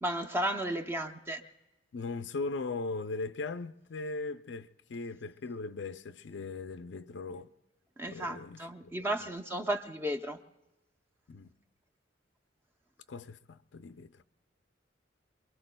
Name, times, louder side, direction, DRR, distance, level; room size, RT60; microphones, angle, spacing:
voice 1, 0.0-1.4 8.0-10.4, right 1 dB, 10° right, 0.6 m, -34 dB
voice 2, 1.9-7.5 8.1-9.3 11.3-11.5 13.1-14.1, left 3 dB, 70° left, 0.5 m, -39 dB
27.5 x 22.5 x 2.2 m
head